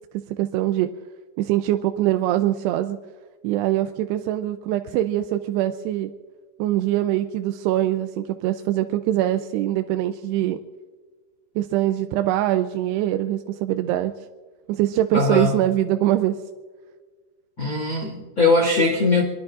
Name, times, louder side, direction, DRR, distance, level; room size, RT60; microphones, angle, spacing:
voice 1, 0.3-0.9 1.4-3.0 3.4-6.1 6.6-10.6 11.6-14.1 14.7-16.4, right 13 dB, 80° right, 8 dB, 2.6 m, -23 dB
voice 2, 15.1-15.5 17.6-19.2, left 3 dB, 40° left, 0 dB, 1.7 m, -20 dB
25.5 x 22.5 x 2.5 m, 1.5 s
omnidirectional pair, 5.1 m